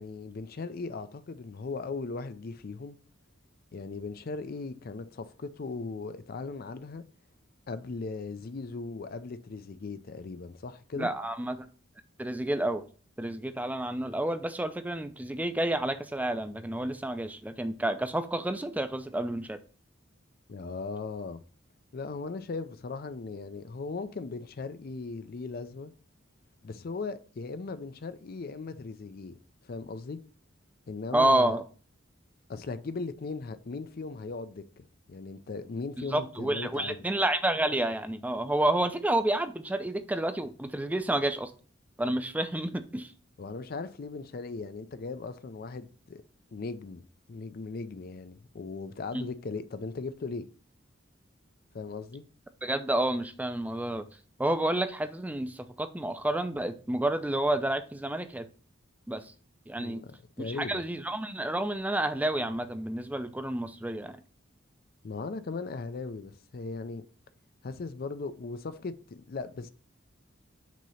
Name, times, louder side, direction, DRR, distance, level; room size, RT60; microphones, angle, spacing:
voice 1, 0.0-3.0 3.7-7.0 7.7-11.1 20.5-21.4 21.9-25.9 26.6-29.4 29.6-30.2 30.9-31.6 32.5-37.0 43.4-46.2 46.5-47.0 47.3-50.5 51.7-52.2 59.8-60.9 65.0-67.0 67.6-69.7, left 4 dB, 50° left, 0.5 m, -38 dB
voice 2, 11.0-11.7 12.2-12.8 13.2-19.6 31.1-31.6 36.1-41.5 42.0-43.1 49.1-49.3 52.6-54.1 54.4-58.5 59.1-59.3 59.7-60.0 60.4-64.2, right 1 dB, 10° right, 0.4 m, -29 dB
6.1 x 2.9 x 5.5 m
head